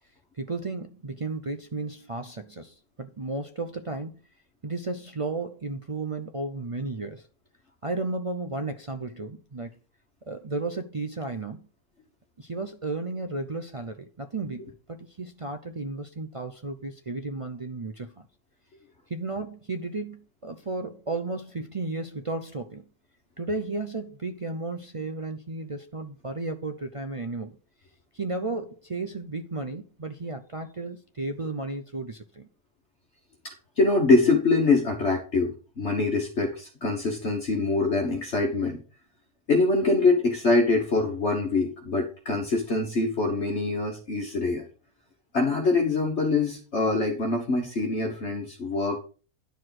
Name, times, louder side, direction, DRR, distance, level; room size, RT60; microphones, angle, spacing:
voice 1, 0.3-4.1 4.6-7.3 7.8-9.8 10.3-11.7 12.4-18.3 19.1-22.9 23.4-27.6 28.1-32.5, right 3 dB, 55° right, 0.3 m, -34 dB
voice 2, 33.4-38.8 39.5-44.7 45.3-49.0, left 3 dB, 50° left, 1.7 m, -24 dB
10.5 x 4.8 x 6.0 m
omnidirectional pair, 1.6 m